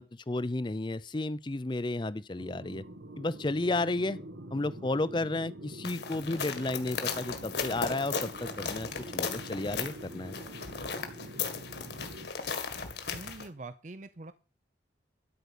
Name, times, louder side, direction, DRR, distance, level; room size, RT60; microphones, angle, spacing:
voice 1, 0.0-2.8 3.2-4.2 4.5-10.3, left 2 dB, 25° left, 0.5 m, -32 dB
sound 1, 2.4-12.3, right 1 dB, 80° right, 1.5 m, -46 dB
sound 2, 5.8-13.5, left 5 dB, 60° left, 1.8 m, -36 dB
voice 2, 13.1-14.3, right 3 dB, 40° right, 0.6 m, -44 dB
12.5 x 5.3 x 8.3 m
head